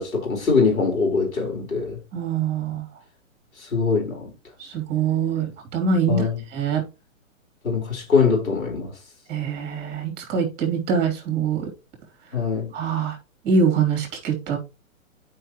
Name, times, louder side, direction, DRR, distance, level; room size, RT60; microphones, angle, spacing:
voice 1, 0.0-2.0 3.7-4.3 6.1-6.4 7.6-8.9 12.3-12.7, left 5 dB, 80° left, 4.4 m, -22 dB
voice 2, 2.1-2.8 4.7-6.3 6.5-6.8 9.3-11.6 12.7-13.1 13.4-14.6, right 5 dB, 25° right, 3.1 m, -23 dB
11.0 x 5.6 x 3.0 m
hypercardioid pair, 140°, 41 cm